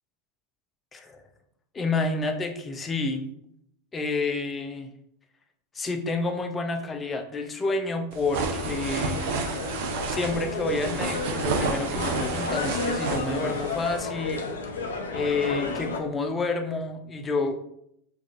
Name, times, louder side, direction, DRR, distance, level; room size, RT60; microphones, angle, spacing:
voice 1, 0.9-1.2 1.7-3.2 3.9-4.9 5.7-9.3 10.1-14.5 15.1-17.6, left 3 dB, 25° left, 6 dB, 0.6 m, -29 dB
sound 1, 8.1-14.0, right 4 dB, 65° right, 0.6 m, -31 dB
sound 2, 8.5-16.0, left 4 dB, 85° left, 0.5 m, -32 dB
4.8 x 2.5 x 2.5 m, 0.74 s
hypercardioid pair, 95°, 0 cm